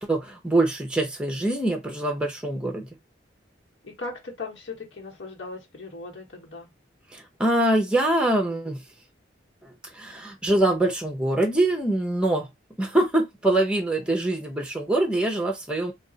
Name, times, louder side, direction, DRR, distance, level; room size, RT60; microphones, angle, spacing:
voice 1, 0.0-2.9 7.1-8.8 9.9-12.5 12.8-15.9, right 1 dB, 5° right, 0.6 m, -24 dB
voice 2, 3.8-6.7, left 3 dB, 90° left, 1.2 m, -38 dB
2.4 x 2.4 x 3.9 m
head